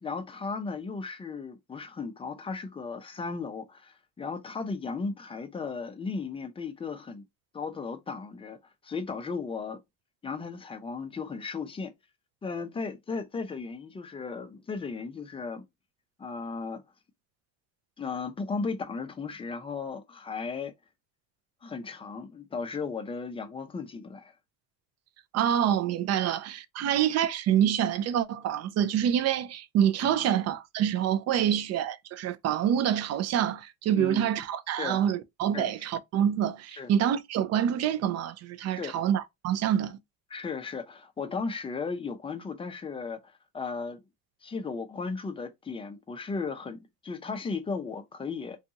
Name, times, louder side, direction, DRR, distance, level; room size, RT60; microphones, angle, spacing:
voice 1, 0.0-7.2 7.5-8.6 8.8-9.8 10.2-11.9 12.4-15.6 16.2-16.8 18.0-20.7 21.6-24.3 26.2-26.3 26.8-27.0 30.0-30.3 31.4-31.6 33.9-34.3 34.8-35.0 35.5-35.7 36.8-36.9 38.7-39.0 40.3-44.0 44.4-48.6, left 4 dB, 15° left, 0.5 m, -36 dB
voice 2, 25.3-40.0, right 10 dB, 40° right, 0.4 m, -26 dB
2.6 x 2.4 x 2.7 m
supercardioid pair, 95°, 40 cm